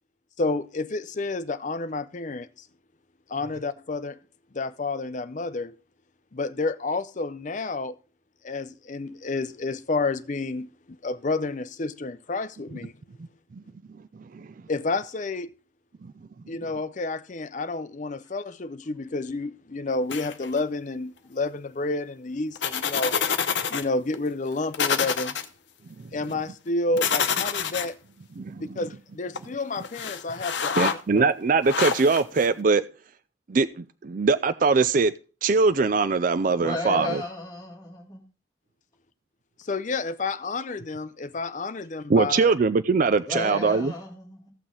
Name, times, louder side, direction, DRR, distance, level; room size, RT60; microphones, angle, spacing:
voice 1, 0.4-2.7 3.3-4.2 4.5-5.8 6.3-8.0 8.4-13.0 14.7-15.5 16.5-23.2 23.7-25.4 26.1-28.0 28.6-31.3 39.6-42.5, left 3 dB, 40° left, 0.5 m, -30 dB
sound 1, 20.1-20.6 22.5-23.8 24.1-24.2 24.7-25.4 27.0-27.9 29.3-29.4 29.8-30.9 31.6-32.5, left 7 dB, 65° left, 0.8 m, -27 dB
voice 2, 28.4-28.8 30.8-32.8 33.5-35.1 35.4-37.2 42.1-43.9, right 4 dB, 45° right, 0.4 m, -22 dB
voice 3, 36.6-38.2 43.3-44.5, left 2 dB, 20° left, 2.5 m, -33 dB
16.0 x 6.1 x 3.8 m
head